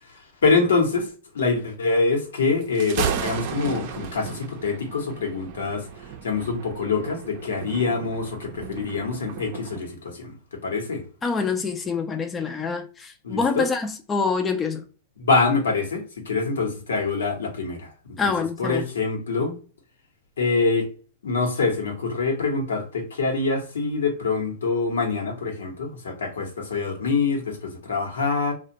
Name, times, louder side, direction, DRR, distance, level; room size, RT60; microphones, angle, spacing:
voice 1, 0.1-5.9 6.2-10.3 10.6-11.0 13.2-13.7 15.2-17.9 18.2-18.3 18.6-19.6 20.4-20.9 21.2-28.5, left 4 dB, 90° left, 0.9 m, -25 dB
Thunder, 2.6-9.8, right 7 dB, 55° right, 0.5 m, -34 dB
voice 2, 11.2-14.8 18.2-18.8, left 5 dB, 20° left, 0.4 m, -26 dB
2.4 x 2.1 x 2.7 m
hypercardioid pair, 120°, 0 cm